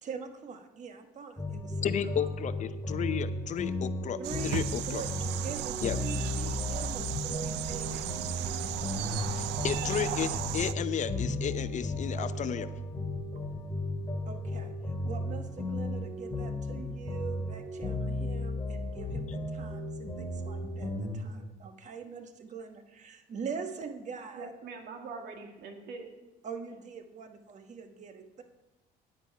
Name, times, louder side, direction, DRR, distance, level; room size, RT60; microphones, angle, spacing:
voice 1, 0.0-2.3 4.2-4.6 4.9-5.1 5.4-8.1 12.1-12.3 13.4-13.5 14.3-24.5 26.4-28.4, right 5 dB, 45° right, 7 dB, 1.2 m, -43 dB
sound 1, 1.4-21.1, left 1 dB, 20° left, 2.4 m, -35 dB
voice 2, 1.8-5.0 5.8-6.0 9.3-12.7, left 9 dB, 45° left, 13 dB, 0.6 m, -33 dB
sound 2, 4.2-10.7, right 12 dB, 90° right, 0.5 m, -35 dB
voice 3, 24.3-26.1, right 4 dB, 70° right, 3 dB, 1.9 m, -43 dB
10.5 x 10.0 x 4.6 m, 1.0 s
cardioid pair, 110°, 17 cm